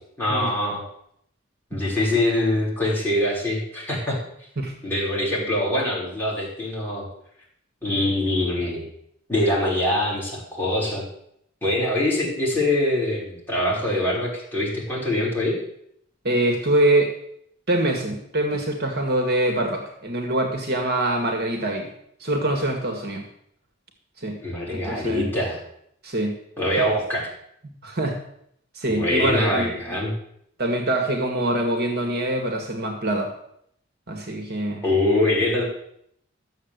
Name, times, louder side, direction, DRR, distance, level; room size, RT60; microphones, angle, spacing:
voice 1, 0.2-0.8 1.7-4.2 4.8-7.1 7.8-8.8 9.3-11.0 11.6-15.6 24.4-25.6 26.6-27.3 28.9-30.1 34.8-35.6, left 1 dB, 10° left, -6 dB, 5.9 m, -23 dB
voice 2, 16.2-17.1 17.7-21.9 22.2-23.2 24.2-24.4 24.7-25.3 26.0-26.3 27.8-28.2 28.7-29.8 30.6-33.3 34.1-34.8, right 1 dB, 55° right, 3 dB, 2.1 m, -24 dB
13.5 x 7.3 x 8.2 m, 0.71 s
head